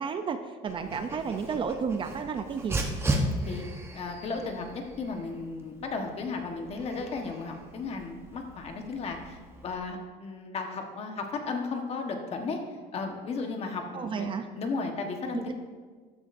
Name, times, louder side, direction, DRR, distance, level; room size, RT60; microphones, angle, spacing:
voice 1, 0.0-2.8 13.9-14.4 15.3-15.6, right 6 dB, 30° right, 8 dB, 0.5 m, -32 dB
Dog, 0.7-9.8, right 1 dB, 15° right, 1.0 m, -36 dB
voice 2, 3.1-3.6 3.9-12.6 12.9-15.6, left 4 dB, 40° left, 4 dB, 1.3 m, -35 dB
13.5 x 10.5 x 2.6 m, 1.5 s
cardioid pair, 150°, 17 cm